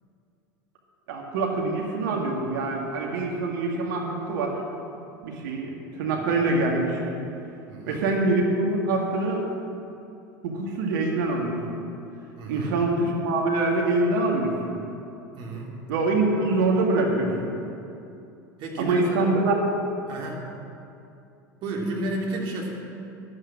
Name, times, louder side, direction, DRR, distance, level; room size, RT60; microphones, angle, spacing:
voice 1, 1.1-4.6 5.2-7.0 7.9-9.4 10.4-11.8 12.5-14.8 15.9-17.5 18.8-19.6, right 2 dB, 70° right, 0 dB, 2.0 m, -25 dB
voice 2, 7.7-8.0 12.4-12.7 15.3-15.7 18.6-19.3 20.1-20.4 21.6-22.7, right 1 dB, 50° right, -1 dB, 3.0 m, -32 dB
12.0 x 8.2 x 7.4 m, 2.7 s
hypercardioid pair, 85°, 11 cm